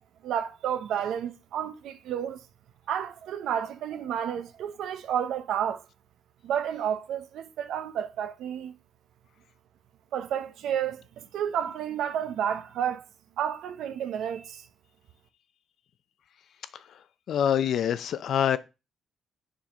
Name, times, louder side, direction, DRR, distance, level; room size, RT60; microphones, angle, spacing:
voice 1, 0.2-2.4 2.9-5.8 6.4-8.7 10.1-13.0 13.4-14.6, right 9 dB, 80° right, 0.7 m, -31 dB
voice 2, 17.3-18.6, left 9 dB, 70° left, 0.5 m, -26 dB
7.3 x 3.8 x 5.2 m
cardioid pair, 90°, 0 cm